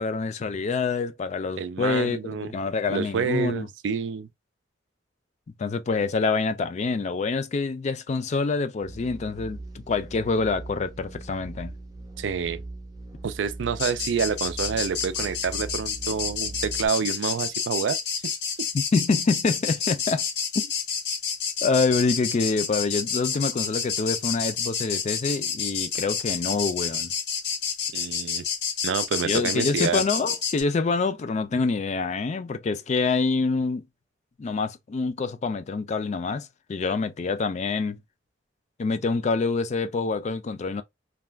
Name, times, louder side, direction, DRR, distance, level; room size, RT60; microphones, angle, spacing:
voice 1, 0.0-3.7 5.6-11.7 18.7-20.3 21.6-27.1 29.2-33.9 34.4-38.0 38.8-40.8, left 4 dB, 40° left, 0.3 m, -26 dB
voice 2, 1.6-2.5 2.9-4.3 12.2-12.6 13.2-18.0 18.2-18.3 27.9-28.4 28.8-30.0, right 6 dB, 85° right, 0.4 m, -28 dB
sound 1, 8.8-16.9, right 2 dB, 20° right, 0.6 m, -40 dB
sound 2, 13.8-30.6, left 6 dB, 65° left, 0.7 m, -29 dB
2.3 x 2.2 x 3.2 m
head